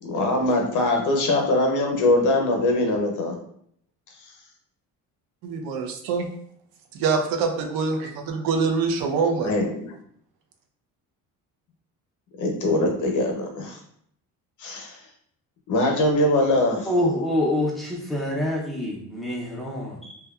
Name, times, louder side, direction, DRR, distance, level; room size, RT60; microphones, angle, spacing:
voice 1, 0.0-3.3 9.4-9.9 12.4-13.8 14.6-15.0 15.7-16.9, left 2 dB, 60° left, 2 dB, 0.7 m, -22 dB
voice 2, 5.4-6.2 6.9-9.5, right 4 dB, 75° right, 3 dB, 0.6 m, -24 dB
voice 3, 16.9-20.2, left 1 dB, ahead, -3 dB, 0.5 m, -26 dB
2.8 x 2.2 x 2.2 m, 0.67 s
cardioid pair, 115°, 35 cm